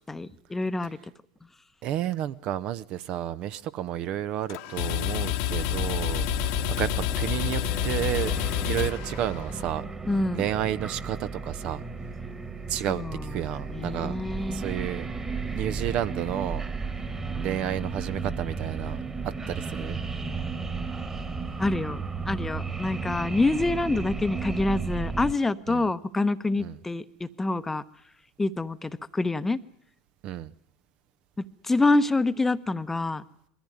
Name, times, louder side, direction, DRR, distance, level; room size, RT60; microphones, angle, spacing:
voice 1, 0.1-1.0 10.1-10.4 12.9-14.6 21.6-27.8 28.4-29.6 31.6-33.2, left 2 dB, 10° left, 0.9 m, -27 dB
voice 2, 1.8-6.9 7.2-8.3 8.7-9.9 10.3-11.8 12.7-14.2 14.5-15.1 15.5-16.6 17.4-20.0 25.7-25.8 26.6-26.8 30.2-30.5, right 11 dB, 50° right, 0.8 m, -31 dB
sound 1, 4.5-9.7, left 12 dB, 60° left, 1.2 m, -29 dB
sound 2, 5.5-25.4, right 4 dB, 20° right, 1.8 m, -34 dB
21.5 x 14.5 x 9.6 m
hypercardioid pair, 80°, 2 cm